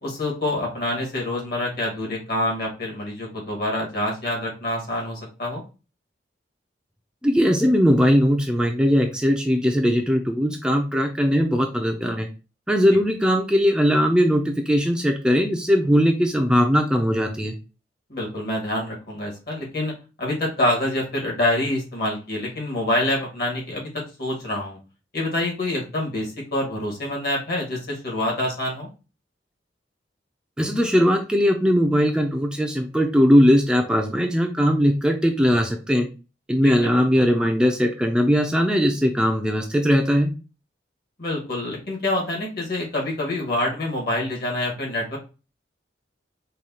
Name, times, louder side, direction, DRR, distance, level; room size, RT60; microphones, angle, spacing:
voice 1, 0.0-5.6 18.1-24.8 25.1-28.9 36.8-36.9 41.2-45.2, left 1 dB, 60° left, -2 dB, 1.7 m, -26 dB
voice 2, 7.2-12.3 12.7-17.5 30.6-36.1 36.5-40.3, equal, 5° right, 3 dB, 0.3 m, -19 dB
4.8 x 2.3 x 2.8 m, 0.31 s
head